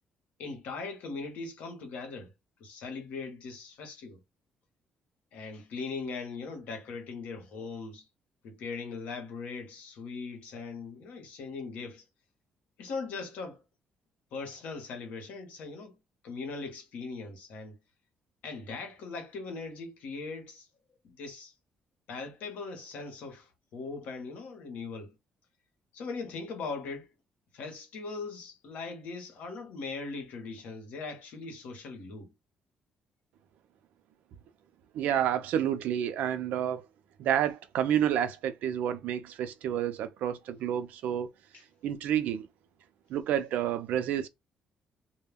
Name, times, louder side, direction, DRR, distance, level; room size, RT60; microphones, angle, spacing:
voice 1, 0.4-2.3 2.6-4.2 5.3-8.0 8.4-12.0 12.8-13.6 14.3-16.0 16.2-17.8 18.4-20.7 21.0-21.5 22.1-25.1 25.9-27.1 27.5-32.3 41.5-41.6, left 4 dB, 75° left, 1.0 m, -40 dB
voice 2, 34.9-36.8 37.2-41.3 41.8-42.4 43.1-44.3, right 10 dB, 80° right, 0.4 m, -29 dB
2.2 x 2.1 x 3.4 m
cardioid pair, 155°, 3 cm